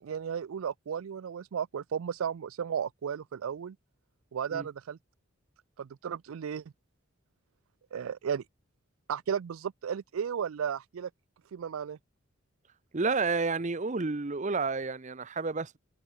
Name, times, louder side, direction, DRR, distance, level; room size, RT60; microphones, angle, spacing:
voice 1, 0.0-3.8 4.3-5.0 5.8-6.6 7.9-8.4 9.1-11.1 11.5-12.0, right 7 dB, 80° right, 0.4 m, -34 dB
voice 2, 12.9-15.8, right 4 dB, 35° right, 0.8 m, -30 dB
head